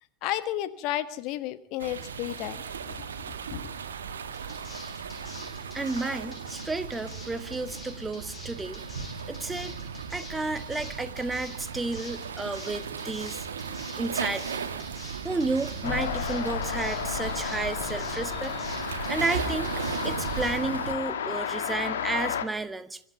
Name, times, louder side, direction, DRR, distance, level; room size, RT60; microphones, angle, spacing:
voice 1, 0.2-2.6 2.9-3.0 3.5-3.7, left 13 dB, 40° left, 13 dB, 1.4 m, -32 dB
sound 1, 1.8-20.9, right 6 dB, 65° right, 1.9 m, -36 dB
sound 2, 4.3-20.5, left 2 dB, 20° left, 7.9 m, -46 dB
voice 2, 5.7-8.8 9.3-9.8 10.1-13.5 14.0-14.6 15.2-18.6 19.1-23.0, right 3 dB, 10° right, 11 dB, 1.5 m, -32 dB
sound 3, 15.8-22.5, left 8 dB, 60° left, 2.1 m, -32 dB
24.0 x 13.0 x 9.1 m, 0.64 s
figure-of-eight pair, 90°, 0 cm